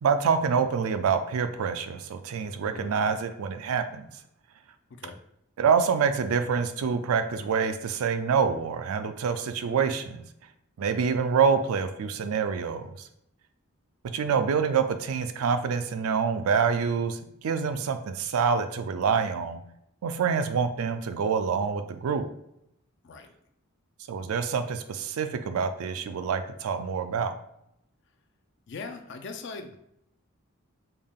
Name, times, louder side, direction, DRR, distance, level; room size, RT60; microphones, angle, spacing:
voice 1, 0.0-4.1 5.6-10.2 10.8-13.1 14.1-19.6 20.0-22.3 24.1-27.3, right 6 dB, 80° right, 9 dB, 0.4 m, -26 dB
voice 2, 28.7-29.8, left 4 dB, 55° left, 6 dB, 0.4 m, -40 dB
3.5 x 2.3 x 3.5 m, 0.77 s
head